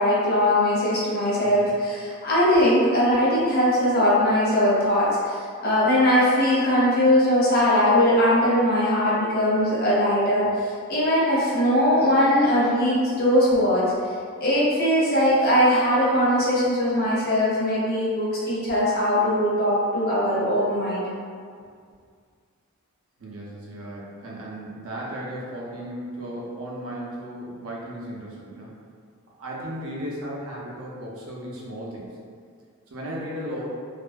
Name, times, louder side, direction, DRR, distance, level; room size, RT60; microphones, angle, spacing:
voice 1, 0.0-13.9 14.4-21.1, equal, 50° left, -8 dB, 0.7 m, -20 dB
voice 2, 1.4-1.7 23.2-28.8 29.4-32.1 32.9-33.7, equal, 90° right, -4 dB, 0.6 m, -35 dB
2.4 x 2.2 x 2.4 m, 2.1 s
head